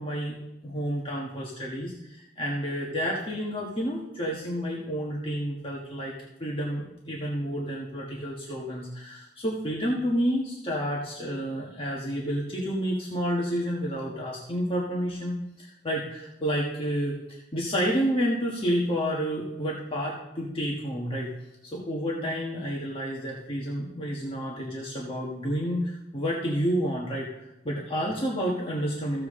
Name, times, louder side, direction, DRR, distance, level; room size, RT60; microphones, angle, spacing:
voice 1, 0.0-6.1 6.4-21.3 21.7-27.3 27.6-29.3, equal, 30° left, -4 dB, 1.5 m, -30 dB
15.0 x 7.7 x 3.8 m, 0.89 s
head